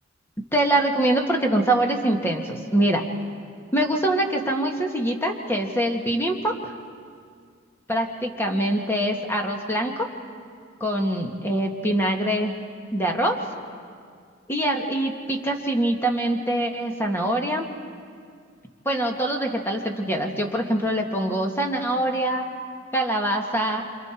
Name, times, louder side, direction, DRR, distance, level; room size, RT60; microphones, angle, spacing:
voice 1, 0.5-3.0 3.7-6.7 7.9-10.1 10.8-12.5 12.9-13.4 14.5-17.7 18.8-22.4 22.9-23.8, right 1 dB, 10° left, 2 dB, 1.7 m, -24 dB
27.5 x 27.0 x 4.5 m, 2.1 s
head